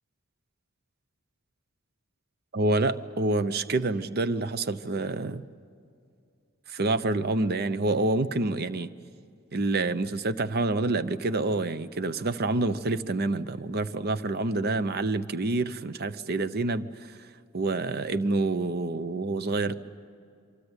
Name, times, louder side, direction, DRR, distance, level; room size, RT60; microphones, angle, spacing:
voice 1, 2.5-5.4 6.7-8.9 9.5-17.3 17.5-19.7, right 2 dB, 50° right, 13 dB, 0.7 m, -27 dB
27.0 x 25.0 x 8.1 m, 2.4 s
head